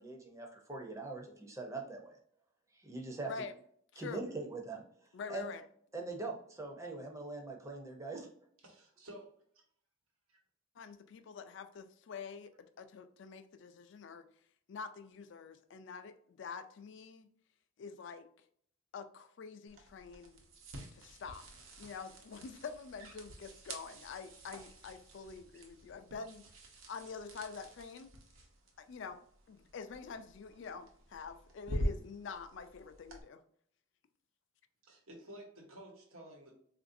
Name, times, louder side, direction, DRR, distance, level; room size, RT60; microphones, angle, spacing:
voice 1, 0.0-2.2 2.7-3.3 4.0-4.8 5.3-5.5 5.9-8.3, right 3 dB, 15° right, 0.5 m, -42 dB
voice 2, 5.1-5.6 10.8-14.3 14.7-17.3 17.8-18.3 18.9-20.4 20.9-21.4 21.8-26.4 26.9-28.1 28.8-29.2 29.5-33.4, left 5 dB, 60° left, 0.3 m, -46 dB
voice 3, 8.6-9.6 10.3-10.4 34.8-36.6, right 1 dB, 90° right, 1.1 m, -53 dB
sound 1, 19.7-33.2, equal, 75° right, 0.8 m, -46 dB
3.8 x 2.5 x 2.5 m
head